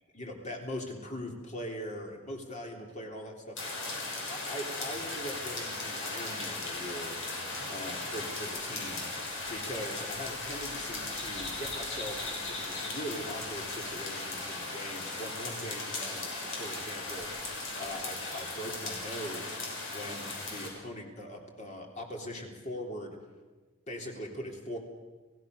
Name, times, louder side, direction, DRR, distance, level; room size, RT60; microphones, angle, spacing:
voice 1, 0.1-3.6 4.3-9.1 9.5-16.3 16.5-19.6 19.9-23.2 23.9-24.8, equal, 35° left, 1 dB, 3.4 m, -41 dB
sound 1, 3.6-20.7, left 2 dB, 60° left, 6.4 m, -37 dB
29.0 x 17.0 x 6.6 m, 1.3 s
head